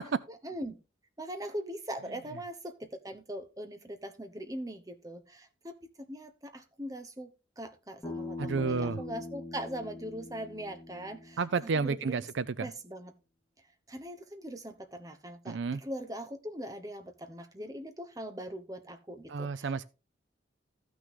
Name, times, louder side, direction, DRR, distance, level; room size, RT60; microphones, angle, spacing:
voice 1, 0.4-0.8 1.2-5.7 6.1-7.3 7.6-12.2 12.6-13.1 13.9-19.8, right 1 dB, 20° right, 1.0 m, -41 dB
Bass guitar, 8.0-12.3, left 3 dB, 5° left, 3.4 m, -43 dB
voice 2, 8.4-9.0 11.4-12.7 15.5-15.8 19.3-19.8, right 5 dB, 70° right, 0.5 m, -31 dB
14.0 x 6.1 x 3.7 m
head